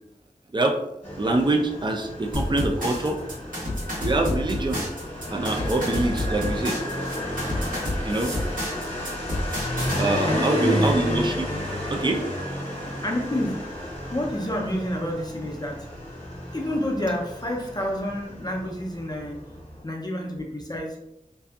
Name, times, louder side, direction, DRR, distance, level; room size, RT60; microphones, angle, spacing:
Motorcycle, 1.0-19.8, left 1 dB, 45° left, 0.8 m, -32 dB
voice 1, 1.2-3.2 4.0-4.8 5.3-6.7 8.0-8.3 10.0-11.5 11.9-12.2, right 2 dB, 35° right, 2 dB, 0.4 m, -24 dB
sound 1, 2.3-10.0, left 1 dB, 70° right, 1.0 m, -30 dB
voice 2, 10.3-10.8 12.9-13.5 14.1-15.8 16.5-19.4 19.8-21.0, left 1 dB, 30° left, 0 dB, 0.5 m, -29 dB
2.6 x 2.3 x 2.3 m, 0.84 s
wide cardioid pair, 60°, 14 cm